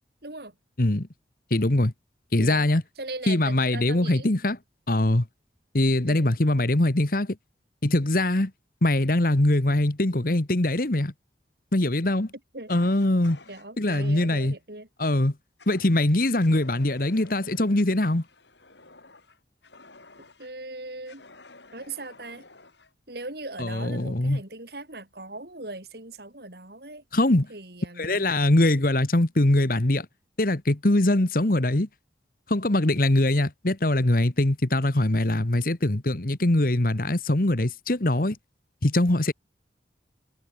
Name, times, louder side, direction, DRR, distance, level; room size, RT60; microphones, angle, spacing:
voice 1, 0.2-0.5 2.4-2.7 3.0-4.3 6.1-6.3 12.5-12.7 13.5-14.9 20.4-21.2 21.7-22.4 23.1-27.0 27.5-28.2, right 2 dB, 60° right, 4.2 m, -39 dB
voice 2, 1.5-1.9 2.3-2.8 3.3-4.6 4.9-5.2 5.7-7.4 7.8-8.5 8.8-11.1 11.7-12.3 12.7-13.4 13.8-14.5 15.0-15.3 15.7-18.2 23.6-24.4 27.1-27.5 28.0-30.1 30.4-31.9 32.5-38.4 38.8-39.3, left 1 dB, 50° left, 1.5 m, -22 dB
Fire, 12.7-14.3 15.6-16.0 16.4-20.5 21.1-22.9, left 3 dB, 75° left, 7.1 m, -51 dB
head